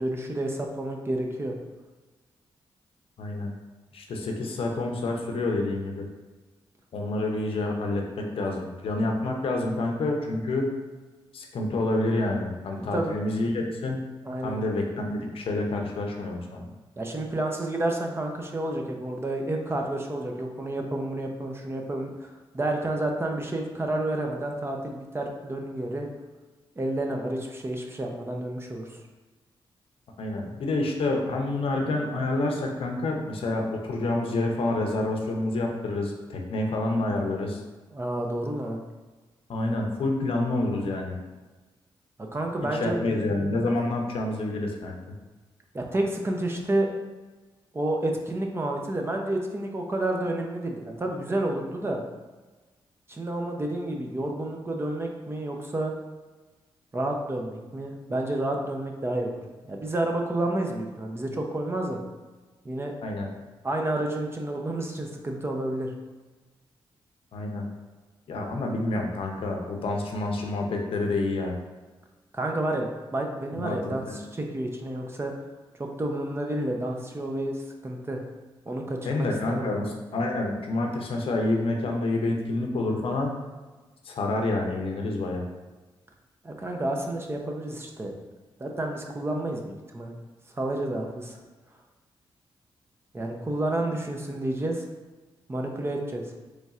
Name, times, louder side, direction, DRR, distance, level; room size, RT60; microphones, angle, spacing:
voice 1, 0.0-1.5 12.8-13.1 14.2-14.6 17.0-26.1 26.8-29.0 37.9-38.8 42.3-43.0 45.7-46.9 47.7-52.0 53.1-55.9 56.9-59.4 59.6-62.0 62.6-62.9 63.6-65.9 72.3-75.3 75.8-78.2 78.7-79.9 86.4-88.1 88.6-90.1 90.6-91.4 93.1-94.9 95.5-96.2, right 1 dB, 25° right, 1 dB, 0.6 m, -30 dB
voice 2, 3.2-3.5 3.9-6.1 6.9-8.0 8.4-10.8 11.3-14.1 14.4-16.6 30.2-37.6 39.5-41.2 42.7-45.0 63.0-63.3 67.3-67.7 68.3-71.6 73.5-74.2 79.0-79.9 80.1-83.4 84.0-85.4, left 2 dB, 70° left, 1 dB, 0.6 m, -28 dB
4.1 x 3.2 x 2.4 m, 1.2 s
cardioid pair, 70°, 10 cm